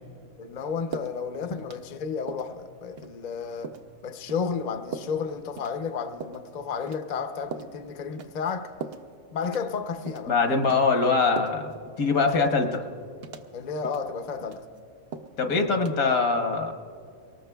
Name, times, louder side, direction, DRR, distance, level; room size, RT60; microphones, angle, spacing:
voice 1, 0.4-3.7 4.0-8.7 9.3-10.3 13.5-14.6, left 5 dB, 45° left, 7 dB, 0.6 m, -32 dB
sound 1, 0.9-1.2 1.6-2.0 2.3-2.5 3.0-3.1 3.6-3.9 4.3-4.4 4.9-5.2 5.6-5.8 6.2-6.4 6.9-7.2 7.5-7.7 8.2-8.5 8.8-9.1 9.4-9.8 10.1-10.3 10.7-10.8 11.4-11.7 12.0-12.2 12.6-12.8 13.2-13.5 13.8-14.1 14.4-14.8 15.1-15.4 15.7-15.9, right 5 dB, 55° right, 0.8 m, -39 dB
voice 2, 10.3-11.7 12.0-12.9 15.4-16.7, left 4 dB, 80° left, 4 dB, 1.6 m, -23 dB
23.5 x 19.0 x 2.3 m, 2.3 s
omnidirectional pair, 1.5 m